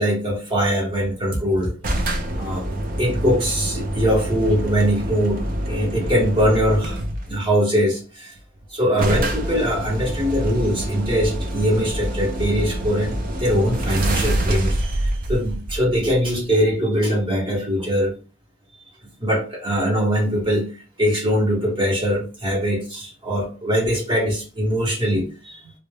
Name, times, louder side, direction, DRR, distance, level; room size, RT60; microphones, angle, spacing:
voice 1, 0.0-2.0 2.4-2.7 3.0-7.0 7.3-8.3 8.7-18.1 19.2-20.7 21.0-25.7, equal, 25° right, -2 dB, 0.8 m, -22 dB
sound 1, 1.8-7.4 8.4-8.5 8.6-8.7 9.0-16.5, right 1 dB, 40° right, 0.3 m, -26 dB
2.2 x 2.0 x 3.2 m, 0.35 s
head